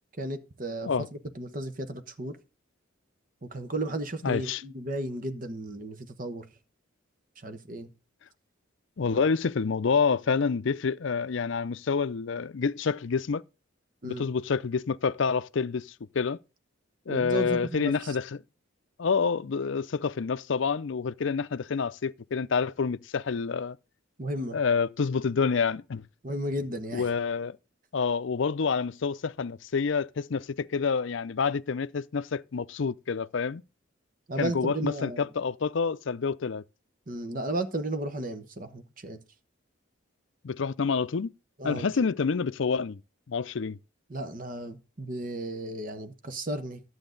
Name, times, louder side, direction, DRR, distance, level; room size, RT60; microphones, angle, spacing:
voice 1, 0.2-2.4 3.4-6.5 7.4-7.9 9.1-9.3 14.0-14.3 17.1-18.1 24.2-24.6 26.2-27.1 34.3-35.2 37.1-39.2 41.6-41.9 44.1-46.8, right 1 dB, 40° right, 1.1 m, -34 dB
voice 2, 4.2-4.6 9.0-13.4 14.0-16.4 17.1-18.4 19.0-23.8 24.5-26.0 26.9-27.6 27.9-33.6 34.4-36.6 40.4-41.3 41.6-43.0 43.3-43.8, left 5 dB, 70° left, 0.5 m, -28 dB
12.0 x 7.9 x 3.9 m
head